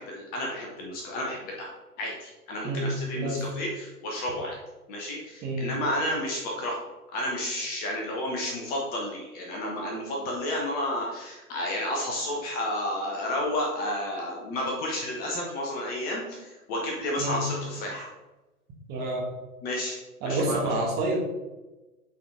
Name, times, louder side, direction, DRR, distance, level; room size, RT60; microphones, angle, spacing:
voice 1, 0.0-4.6 4.9-6.8 7.1-18.1 19.6-20.0 20.2-20.6, left 1 dB, 20° left, -1 dB, 0.9 m, -31 dB
voice 2, 2.6-3.5 5.4-5.7 17.2-17.4 18.9-19.3 20.2-21.2, right 2 dB, 20° right, -2 dB, 1.3 m, -28 dB
8.4 x 4.0 x 3.6 m, 1.1 s
figure-of-eight pair, 115°, 46 cm